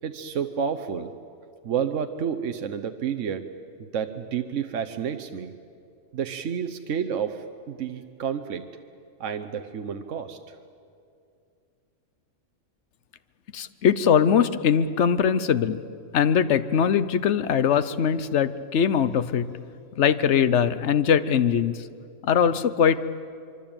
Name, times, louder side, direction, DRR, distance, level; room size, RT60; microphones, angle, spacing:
voice 1, 0.0-1.1 1.6-3.5 3.8-5.5 6.1-8.6 9.2-10.6, right 7 dB, 70° right, 8 dB, 1.3 m, -30 dB
voice 2, 13.5-15.8 16.1-19.6 19.9-21.9 22.2-23.0, left 7 dB, 65° left, 13 dB, 1.2 m, -21 dB
25.0 x 24.0 x 8.9 m, 2.4 s
omnidirectional pair, 1.3 m